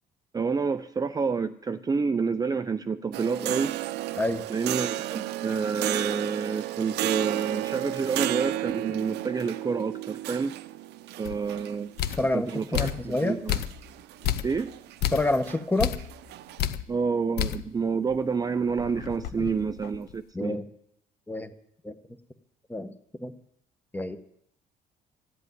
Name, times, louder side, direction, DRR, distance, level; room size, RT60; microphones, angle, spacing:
voice 1, 0.3-3.8 4.5-10.6 11.2-11.9 12.3-13.6 14.4-14.7 16.9-20.6, right 5 dB, 20° right, 10 dB, 0.5 m, -28 dB
sound 1, 3.1-16.6, right 15 dB, 80° right, 0.7 m, -33 dB
sound 2, 11.2-11.4 12.0-12.3 12.7-13.1 13.5-13.9 14.2-14.6 15.0-15.3 15.8-16.1 16.6-16.9 17.4-17.7 18.1-18.2 18.7-20.2, left 10 dB, 75° left, 0.8 m, -30 dB
voice 2, 12.2-13.4 15.1-15.9 19.4-19.5 20.3-20.7 21.3-21.5 21.8-22.0 22.7-22.9 23.2-23.3 23.9-24.2, left 2 dB, 10° left, 10 dB, 1.2 m, -28 dB
14.0 x 8.1 x 9.4 m, 0.72 s
cardioid pair, 110°, 17 cm